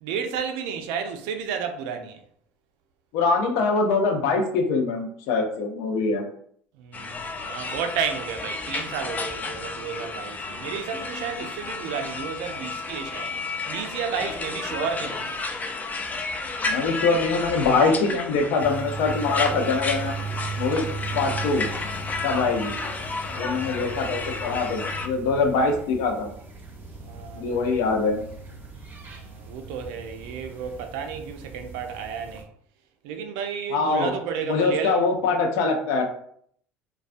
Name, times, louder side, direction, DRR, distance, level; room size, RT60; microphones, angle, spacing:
voice 1, 0.0-2.2 6.8-15.3 23.4-23.9 27.0-27.8 29.0-32.5 33.0-35.3, right 6 dB, 70° right, 0.4 m, -32 dB
voice 2, 3.1-6.3 16.6-20.1 20.6-20.9 21.1-21.7 22.2-22.7 23.3-26.3 27.4-28.2 33.7-34.1 34.5-36.0, left 4 dB, 70° left, 0.6 m, -23 dB
sound 1, 6.9-25.1, left 3 dB, 25° left, 0.4 m, -32 dB
sound 2, 18.6-32.4, right 3 dB, 30° right, 0.6 m, -37 dB
2.3 x 2.3 x 2.5 m
hypercardioid pair, 80°, 6 cm